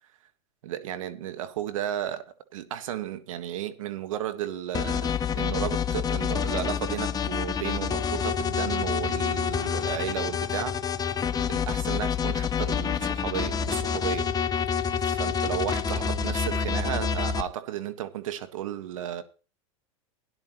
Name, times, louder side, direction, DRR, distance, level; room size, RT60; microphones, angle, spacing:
voice 1, 0.6-2.2 2.5-10.8 11.4-14.3 15.0-19.2, right 11 dB, 75° right, 1.6 m, -34 dB
sound 1, 4.7-17.4, left 7 dB, 20° left, 0.8 m, -28 dB
17.5 x 10.5 x 3.1 m
hypercardioid pair, 115°, 17 cm